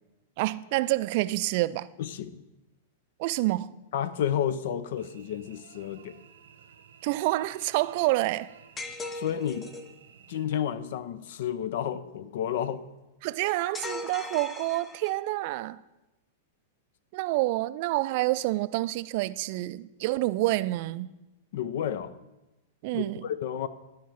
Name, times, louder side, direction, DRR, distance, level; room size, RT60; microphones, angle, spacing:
voice 1, 0.4-1.9 3.2-3.7 7.0-8.5 13.2-15.8 17.1-21.1 22.8-23.3, right 18 dB, 50° right, 0.3 m, -28 dB
voice 2, 2.0-2.4 3.9-6.2 9.1-9.7 10.3-12.8 21.5-22.1 22.9-23.7, left 9 dB, 60° left, 0.4 m, -31 dB
Cricket / Buzz, 5.0-10.4, right 7 dB, 70° right, 0.7 m, -54 dB
sound 1, 8.8-9.9 13.7-15.3, left 2 dB, 20° left, 0.7 m, -38 dB
11.5 x 4.6 x 4.7 m
hypercardioid pair, 100°, 0 cm